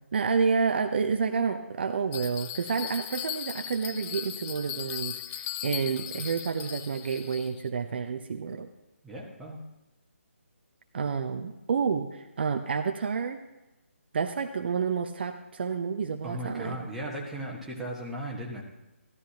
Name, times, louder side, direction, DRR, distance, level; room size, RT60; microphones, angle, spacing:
voice 1, 0.1-8.7 10.9-13.4 14.1-16.8, right 5 dB, 50° right, 6 dB, 0.7 m, -29 dB
Bell, 2.1-7.7, left 11 dB, 15° left, 0.3 m, -38 dB
voice 2, 9.0-9.6 16.2-18.6, right 1 dB, 5° right, -5 dB, 1.5 m, -36 dB
15.0 x 12.5 x 2.9 m, 0.99 s
figure-of-eight pair, 150°, 7 cm